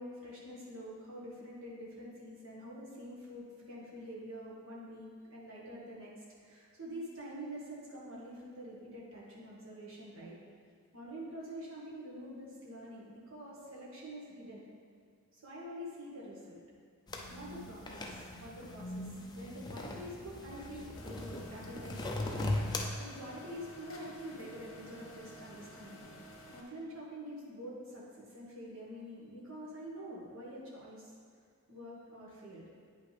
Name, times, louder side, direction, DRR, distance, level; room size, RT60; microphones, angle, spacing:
voice 1, 0.0-10.4 10.9-14.6 15.3-16.6 17.3-22.5 22.7-26.0 26.5-31.1 31.7-32.7, equal, 65° right, -5 dB, 1.9 m, -46 dB
sound 1, 17.1-22.9, left 2 dB, 20° left, 0.5 m, -39 dB
sound 2, 20.9-26.6, equal, 65° left, 1.1 m, -52 dB
8.8 x 5.5 x 3.5 m, 2.1 s
head